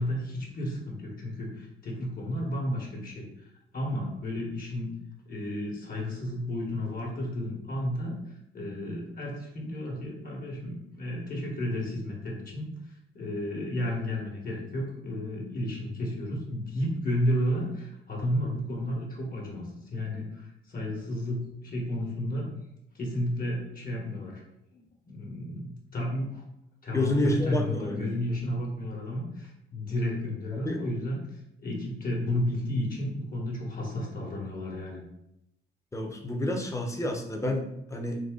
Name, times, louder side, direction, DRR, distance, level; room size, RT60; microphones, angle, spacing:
voice 1, 0.0-3.2 3.7-4.9 5.3-8.1 8.5-12.7 13.1-19.6 19.9-22.5 22.9-24.4 24.7-26.3 26.8-31.2 31.6-35.0, left 1 dB, 45° left, -1 dB, 1.5 m, -32 dB
voice 2, 26.9-28.2 30.6-30.8 35.9-38.2, left 1 dB, 15° left, 2 dB, 0.8 m, -29 dB
4.1 x 2.9 x 3.8 m, 0.83 s
cardioid pair, 90°, 20 cm